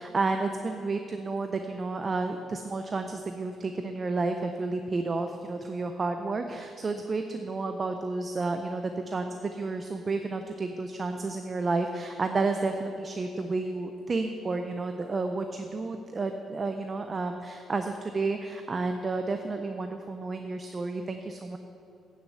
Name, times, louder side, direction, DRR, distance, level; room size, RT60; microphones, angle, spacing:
voice 1, 0.0-21.6, right 3 dB, 35° right, 6 dB, 0.6 m, -31 dB
8.9 x 6.6 x 7.9 m, 2.7 s
cardioid pair, 90°, 0 cm